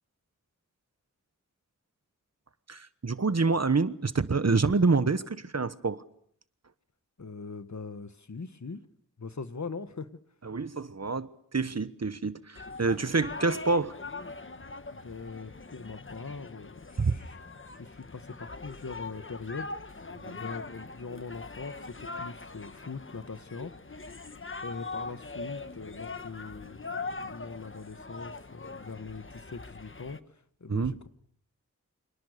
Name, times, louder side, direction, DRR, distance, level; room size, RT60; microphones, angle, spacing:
voice 1, 2.7-6.0 10.4-13.9 17.0-17.2 20.2-20.4 30.7-31.0, right 4 dB, 55° right, 1.2 m, -27 dB
voice 2, 7.2-8.9 9.2-10.2 13.4-13.5 14.9-17.3 17.8-23.7 24.6-31.1, left 4 dB, 65° left, 1.6 m, -42 dB
sound 1, 12.6-30.2, left 3 dB, 40° left, 1.2 m, -42 dB
29.5 x 26.5 x 6.7 m
wide cardioid pair, 45°, 31 cm